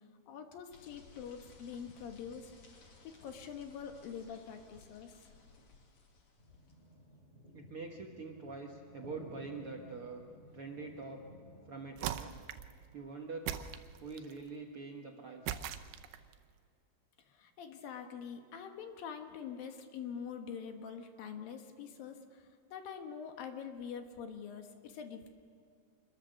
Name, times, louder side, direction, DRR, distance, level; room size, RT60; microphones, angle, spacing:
voice 1, 0.3-2.5 3.0-5.3 17.3-25.3, left 7 dB, 70° left, 5 dB, 3.1 m, -45 dB
sound 1, 0.7-6.9, left 3 dB, 50° left, 3.6 m, -60 dB
sound 2, 6.4-12.0, left 1 dB, 15° left, 5.9 m, -55 dB
voice 2, 7.5-10.2 10.5-11.3 11.7-12.4 12.9-13.5 14.0-15.6, right 4 dB, 55° right, 1 dB, 1.6 m, -45 dB
sound 3, 12.0-12.8 13.5-14.4 15.5-16.4, right 11 dB, 85° right, 2.8 m, -40 dB
26.5 x 21.5 x 6.6 m, 2.3 s
omnidirectional pair, 4.4 m